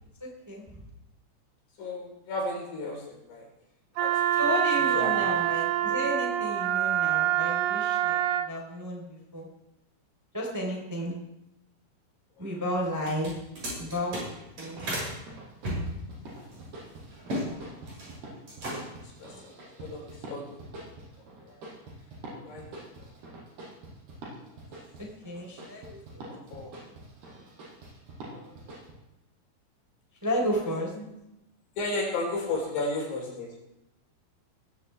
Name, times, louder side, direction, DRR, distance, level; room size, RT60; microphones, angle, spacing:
voice 1, 0.2-0.8 4.4-9.5 10.3-11.1 12.4-13.4 13.8-14.9 25.0-26.3 30.2-30.9 32.8-32.9, equal, 5° right, -1 dB, 3.1 m, -33 dB
voice 2, 1.8-3.5 4.0-4.4 4.9-5.1 12.4-12.5 17.5-17.8 19.2-20.8 21.2-21.6 22.4-23.1 25.9-26.0 26.5-26.8 28.2-28.6 31.0-31.1 31.8-33.5, left 2 dB, 60° left, -1 dB, 6.2 m, -35 dB
Wind instrument woodwind instrument, 4.0-8.5, right 11 dB, 85° right, 3.4 m, -26 dB
sound 1, 13.0-15.1 15.6-17.5 17.8-18.2 18.5-19.1, equal, 35° right, 8.6 m, -34 dB
sound 2, 14.7-28.9, right 2 dB, 55° right, 7.5 m, -45 dB
20.0 x 16.5 x 3.5 m, 0.90 s
omnidirectional pair, 5.5 m